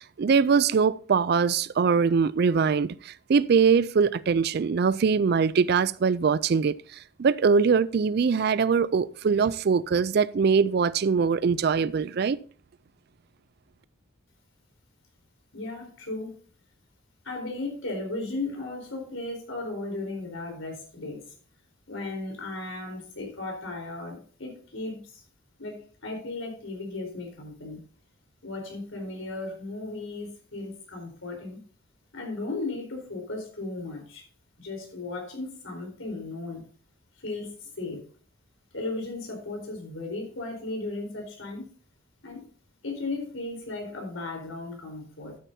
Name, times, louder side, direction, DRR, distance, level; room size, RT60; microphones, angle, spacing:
voice 1, 0.0-12.4, right 5 dB, 50° right, 0.3 m, -22 dB
voice 2, 15.5-16.4 17.2-21.2 21.9-25.2 25.6-27.8 28.4-31.6 32.1-34.2 34.6-36.6 37.2-38.0 38.7-41.7 42.2-42.4 42.8-45.4, left 2 dB, 80° left, 4.1 m, -36 dB
12.5 x 9.1 x 2.7 m
head